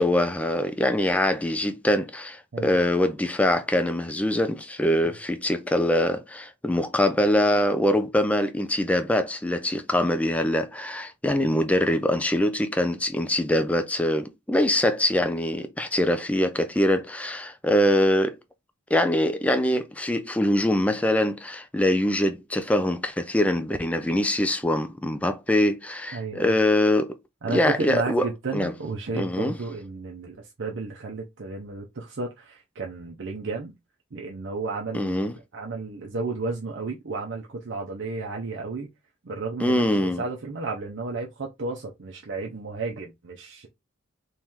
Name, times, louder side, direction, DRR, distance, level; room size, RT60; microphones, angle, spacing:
voice 1, 0.0-18.4 18.9-27.2 27.5-28.7 29.1-29.6 34.9-35.3 39.6-40.2, left 1 dB, 5° left, 0.3 m, -23 dB
voice 2, 26.1-26.6 27.4-33.7 34.1-38.9 39.2-43.7, right 3 dB, 65° right, 0.6 m, -33 dB
3.1 x 2.9 x 3.6 m
head